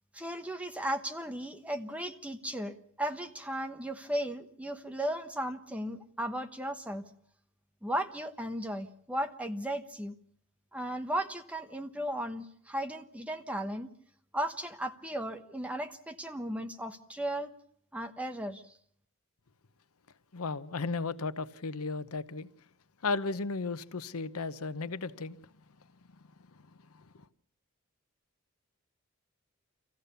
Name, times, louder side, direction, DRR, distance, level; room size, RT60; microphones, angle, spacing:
voice 1, 0.1-7.1 7.8-10.1 10.7-13.9 14.3-17.5 17.9-18.8, right 1 dB, 5° right, 1.0 m, -36 dB
voice 2, 20.3-22.5 23.0-25.4, left 3 dB, 90° left, 0.9 m, -34 dB
25.0 x 15.0 x 6.9 m
head